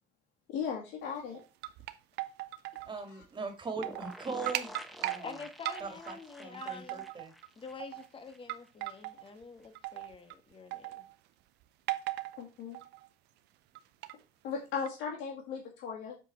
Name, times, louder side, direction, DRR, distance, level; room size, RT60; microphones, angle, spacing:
voice 1, 0.5-1.4 12.4-12.8 14.4-16.1, left 6 dB, 85° left, 2.1 m, -37 dB
sound 1, 1.3-2.9 3.2-3.3 3.7-4.2 4.5-5.2 5.6-6.2 6.5-7.5 7.8-8.1 8.5-9.2 9.7-10.3 10.7-11.1 11.9-12.4 12.7-13.1 13.7-14.1 14.9-15.0, right 16 dB, 85° right, 0.6 m, -38 dB
voice 2, 2.9-5.3 5.8-7.3, right 4 dB, 30° right, 2.1 m, -41 dB
sound 2, 3.8-8.4 8.6-8.7 9.0-9.1, equal, ahead, 0.9 m, -48 dB
voice 3, 5.2-7.1 7.6-11.1, left 5 dB, 30° left, 1.5 m, -47 dB
7.8 x 4.5 x 4.2 m
cardioid pair, 110°, 17 cm